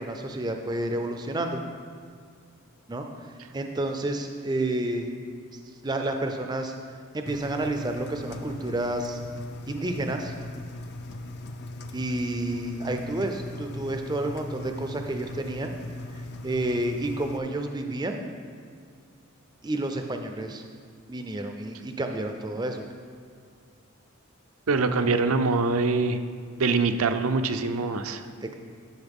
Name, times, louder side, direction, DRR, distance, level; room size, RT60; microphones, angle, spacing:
voice 1, 0.0-1.6 2.9-3.1 3.5-5.1 5.8-6.7 7.1-9.2 9.7-10.3 11.9-15.7 16.4-18.2 19.6-20.6 21.1-22.8 24.7-25.1 28.4-28.5, right 1 dB, 20° right, 5 dB, 0.4 m, -30 dB
Engine, 7.3-17.4, left 1 dB, 50° left, 0.5 m, -39 dB
voice 2, 24.7-26.2 26.6-28.3, right 3 dB, 75° right, 8 dB, 0.6 m, -24 dB
12.0 x 6.4 x 3.6 m, 2.2 s
head